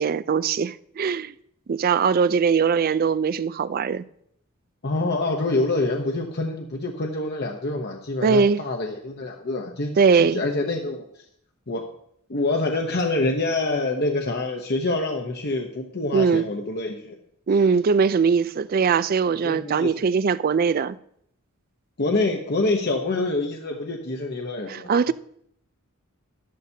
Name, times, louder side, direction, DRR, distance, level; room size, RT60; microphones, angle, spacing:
voice 1, 0.0-1.3 1.7-4.0 8.2-8.6 10.0-10.4 16.1-16.5 17.5-21.0 24.7-25.1, right 5 dB, 45° right, 0.3 m, -21 dB
voice 2, 4.8-11.1 11.7-11.9 12.3-17.2 17.5-17.6 19.4-20.1 22.0-25.1, left 2 dB, 50° left, 0.9 m, -26 dB
12.5 x 11.5 x 2.8 m
head